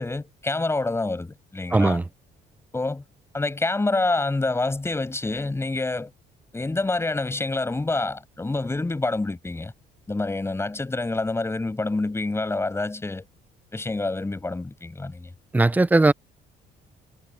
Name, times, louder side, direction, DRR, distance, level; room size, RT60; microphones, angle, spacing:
voice 1, 0.0-2.0 2.7-3.0 3.3-6.1 6.5-9.7 10.1-13.3 13.7-15.3, left 2 dB, 15° left, 6.4 m, -27 dB
voice 2, 1.7-2.0 15.5-16.1, right 2 dB, 10° right, 0.5 m, -18 dB
cardioid pair, 110°, 17 cm